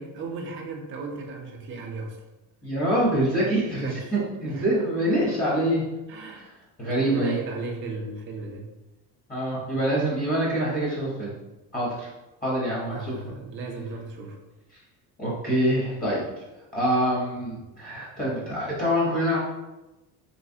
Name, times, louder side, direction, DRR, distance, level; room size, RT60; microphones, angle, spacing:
voice 1, 0.0-2.2 3.7-4.1 4.4-4.7 6.1-6.5 6.9-8.7 12.9-14.4, right 3 dB, 30° right, 1 dB, 0.5 m, -35 dB
voice 2, 2.6-5.8 6.3-6.4 6.8-7.4 9.3-11.3 11.7-12.1 12.4-13.4 15.2-16.2 16.7-19.4, right 1 dB, 20° left, -6 dB, 1.0 m, -25 dB
3.2 x 3.2 x 2.7 m, 1.0 s
cardioid pair, 145°, 41 cm